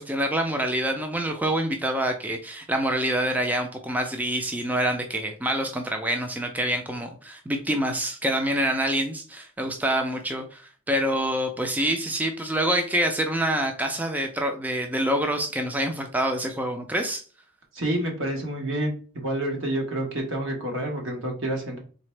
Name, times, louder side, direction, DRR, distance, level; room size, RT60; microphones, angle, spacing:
voice 1, 0.0-17.2, right 1 dB, 10° right, 4 dB, 0.4 m, -26 dB
voice 2, 17.7-18.9 19.2-21.8, right 1 dB, 65° right, 1 dB, 1.4 m, -28 dB
3.8 x 3.4 x 3.2 m, 0.39 s
head